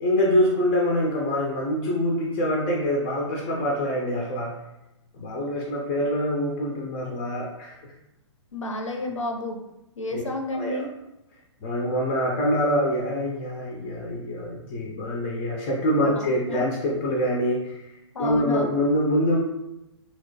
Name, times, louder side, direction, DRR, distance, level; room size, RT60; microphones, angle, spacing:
voice 1, 0.0-4.6 5.1-7.8 10.1-10.2 10.5-10.9 11.6-17.9 18.2-19.4, equal, 25° left, -2 dB, 0.4 m, -25 dB
voice 2, 8.5-9.6 10.0-10.9 16.2-16.7 18.1-18.7, left 2 dB, 80° left, 3 dB, 0.5 m, -31 dB
2.9 x 2.1 x 2.6 m, 0.91 s
figure-of-eight pair, 120°, 16 cm